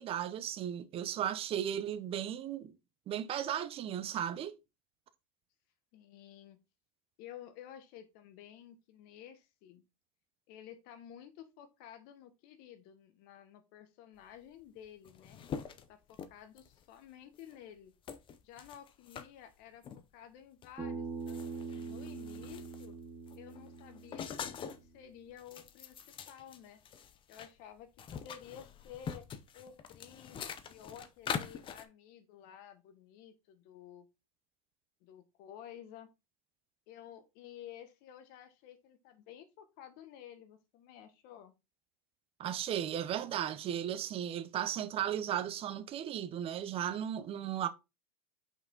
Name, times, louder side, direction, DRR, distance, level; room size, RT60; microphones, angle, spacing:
voice 1, 0.0-2.7 3.1-4.5 42.4-47.7, right 10 dB, 30° right, 0.7 m, -35 dB
voice 2, 5.9-6.6 7.2-9.8 10.5-17.9 18.4-22.9 23.3-26.8 27.3-29.3 29.5-34.1 35.0-36.1 36.9-41.5, left 10 dB, 55° left, 1.5 m, -53 dB
sound 1, 14.6-14.7 14.9-16.8 17.4-17.6 18.1-19.3 19.8-20.0 20.6-20.7 21.1-22.9 23.3-24.9 25.3-27.5 27.8-31.9, left 7 dB, 25° left, 0.7 m, -44 dB
Bass guitar, 20.8-25.0, right 4 dB, 15° right, 2.3 m, -43 dB
5.9 x 4.8 x 3.9 m
supercardioid pair, 125°, 19 cm